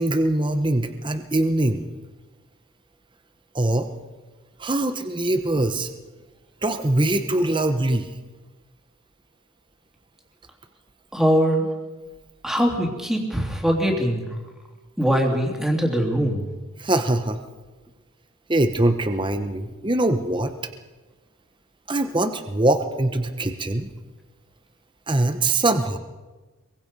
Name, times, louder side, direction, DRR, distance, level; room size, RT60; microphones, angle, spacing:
voice 1, 0.0-1.8 3.5-3.9 4.6-5.9 6.6-8.1 16.8-17.4 18.5-20.5 21.9-23.9 25.1-26.0, right 1 dB, 20° right, 7 dB, 0.9 m, -22 dB
voice 2, 11.1-11.7 12.4-14.2 15.0-16.4, equal, ahead, 1 dB, 2.9 m, -22 dB
23.5 x 23.0 x 5.4 m, 1.2 s
head